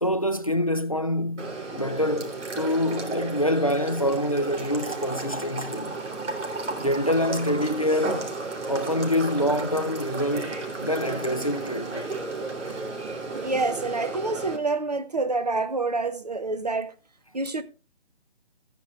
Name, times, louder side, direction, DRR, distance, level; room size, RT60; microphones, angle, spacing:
voice 1, 0.0-6.0 6.8-8.3 8.7-12.2, left 1 dB, 30° left, 0.5 m, -26 dB
sound 1, 1.4-14.6, right 3 dB, 90° right, 3.4 m, -33 dB
voice 2, 13.3-16.9 17.3-17.6, right 3 dB, 35° right, 0.8 m, -27 dB
14.5 x 9.4 x 2.4 m
hypercardioid pair, 175°, 35 cm